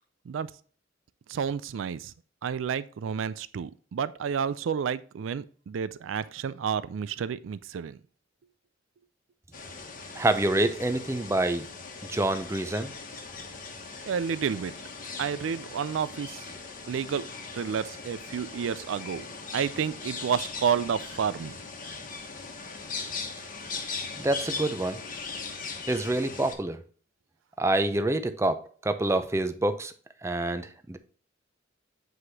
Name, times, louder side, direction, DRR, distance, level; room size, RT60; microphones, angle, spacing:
voice 1, 1.3-2.1 2.4-8.0 14.1-14.7 15.2-16.4 16.9-17.3 17.5-19.2 19.5-21.5, right 7 dB, 85° right, 0.4 m, -30 dB
forest aviary, 9.5-26.5, left 4 dB, 45° left, 1.2 m, -39 dB
voice 2, 10.2-11.7 12.1-12.9 24.2-25.0 25.9-26.8 27.6-29.9 30.2-31.0, right 2 dB, 15° right, 0.5 m, -27 dB
7.8 x 4.9 x 2.7 m
head